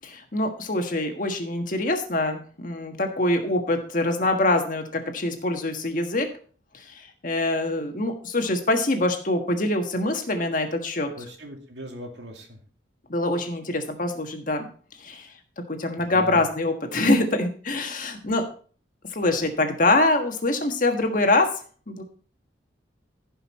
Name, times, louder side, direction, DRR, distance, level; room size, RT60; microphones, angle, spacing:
voice 1, 0.0-6.3 6.8-11.1 13.1-14.7 15.0-15.3 15.7-18.4 19.1-21.5 21.9-22.0, left 2 dB, 45° left, 5 dB, 1.5 m, -24 dB
voice 2, 11.1-12.6 16.1-16.4, equal, 70° right, 2 dB, 2.5 m, -39 dB
15.5 x 5.6 x 4.2 m, 0.42 s
head